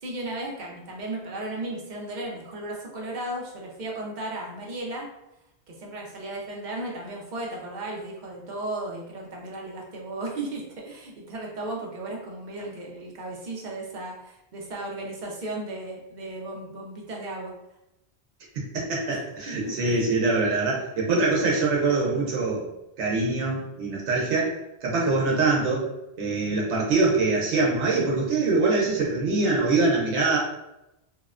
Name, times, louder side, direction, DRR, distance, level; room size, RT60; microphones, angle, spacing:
voice 1, 0.0-5.1 5.7-17.5 19.5-20.0, right 2 dB, 55° right, -2 dB, 0.6 m, -35 dB
voice 2, 18.5-22.7 23.0-24.5 24.8-25.9 26.2-30.4, right 3 dB, 85° right, -3 dB, 0.9 m, -24 dB
2.7 x 2.1 x 2.4 m, 0.90 s
omnidirectional pair, 1.1 m